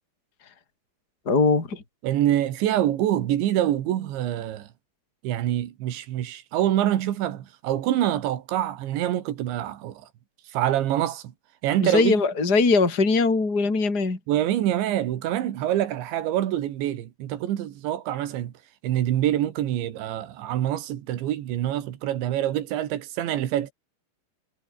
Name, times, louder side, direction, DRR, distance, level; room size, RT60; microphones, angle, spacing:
voice 1, 1.3-1.8 11.8-14.2, left 3 dB, 20° left, 4.5 m, -21 dB
voice 2, 2.0-4.7 5.2-10.1 10.5-11.3 11.6-12.2 14.3-18.5 18.8-23.7, right 12 dB, 80° right, 4.2 m, -25 dB
omnidirectional pair, 5.1 m